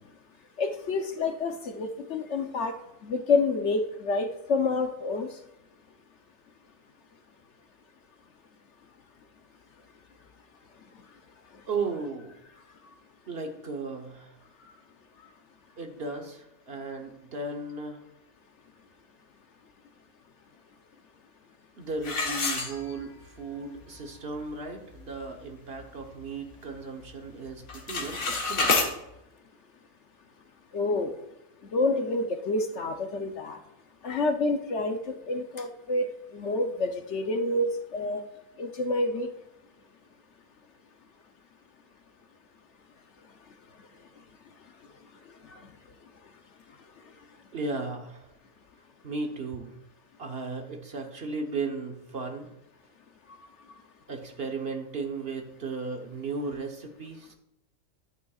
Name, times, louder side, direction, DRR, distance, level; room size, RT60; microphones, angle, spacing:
voice 1, 0.6-2.7 3.0-5.3 30.7-31.1 31.7-33.6 34.0-38.2 38.6-39.3 45.5-45.6, left 3 dB, 60° left, 5 dB, 1.0 m, -28 dB
voice 2, 11.7-12.3 13.3-14.3 15.8-18.0 21.8-28.9 47.5-48.3 49.0-49.7 50.2-52.5 54.1-57.3, right 3 dB, 50° right, 4 dB, 1.1 m, -35 dB
sound 1, 22.0-23.3 23.8-23.9 24.4-24.5 24.9-25.2 25.6-26.8 27.0-27.4 27.6-28.9, left 3 dB, 75° left, 1.8 m, -29 dB
11.5 x 9.2 x 2.4 m, 0.88 s
omnidirectional pair, 1.4 m